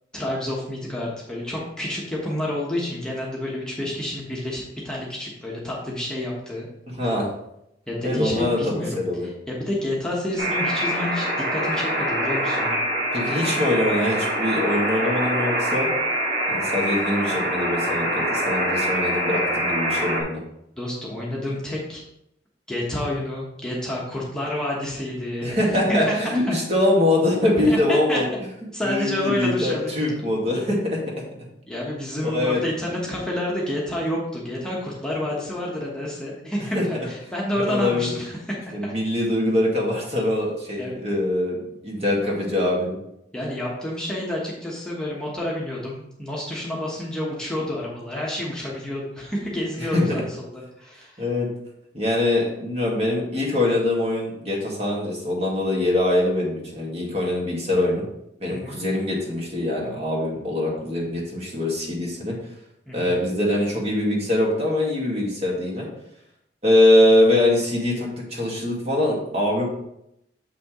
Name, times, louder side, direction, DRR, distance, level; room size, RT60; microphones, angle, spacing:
voice 1, 0.1-6.7 7.9-12.8 13.3-13.5 20.8-22.0 22.7-26.6 27.7-27.8 28.1-28.2 28.7-30.2 31.7-38.4 38.8-38.9 40.8-40.9 43.3-51.2 58.5-58.8 62.9-63.2, left 1 dB, 5° left, -5 dB, 1.2 m, -29 dB
voice 2, 6.9-7.3 8.0-9.3 13.1-15.9 16.5-20.4 25.4-28.2 28.8-31.0 32.2-32.6 36.7-36.8 37.7-38.1 38.7-43.0 49.8-50.2 51.2-51.5 51.9-58.1 58.4-62.4 62.9-65.9 66.6-69.6, left 1 dB, 35° right, -2 dB, 1.9 m, -23 dB
Alarm, 10.4-20.2, right 1 dB, 75° right, 2.3 m, -24 dB
7.5 x 6.0 x 3.1 m, 0.81 s
head